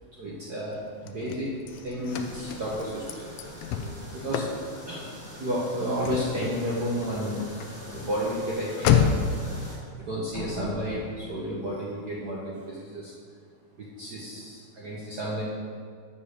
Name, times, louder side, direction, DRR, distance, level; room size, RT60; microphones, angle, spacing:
voice 1, 0.1-1.5 1.8-3.3 4.1-4.5 4.8-5.1 5.4-7.4 7.9-9.0 10.0-13.1 14.0-15.4, equal, 75° right, -5 dB, 0.9 m, -31 dB
Car / Slam, 0.7-9.4, left 8 dB, 90° left, 1.3 m, -31 dB
sound 1, 1.0-4.9 5.4-5.5 5.9-6.3 6.6-6.7 7.2-7.3 10.3-13.0, left 3 dB, 70° left, 1.2 m, -45 dB
sound 2, 2.1-9.8, equal, 5° right, 1.6 m, -44 dB
8.5 x 5.6 x 6.5 m, 2.1 s
omnidirectional pair, 3.5 m